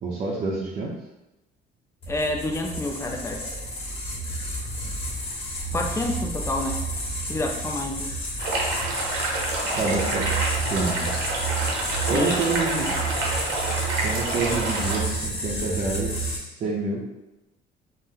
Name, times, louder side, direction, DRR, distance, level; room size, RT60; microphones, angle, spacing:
voice 1, 0.0-0.9 9.7-10.3 10.7-11.1 12.1-13.0 14.0-17.0, right 3 dB, 45° right, -5 dB, 0.5 m, -28 dB
sound 1, 2.0-16.4, right 2 dB, 35° left, 0.7 m, -30 dB
voice 2, 2.1-3.4 5.7-6.8 7.3-8.1 12.1-12.4, left 2 dB, 15° left, 3 dB, 0.4 m, -28 dB
sound 2, 8.4-15.0, right 2 dB, 90° right, 0.6 m, -28 dB
2.5 x 2.0 x 3.6 m, 0.95 s
cardioid pair, 110°, 17 cm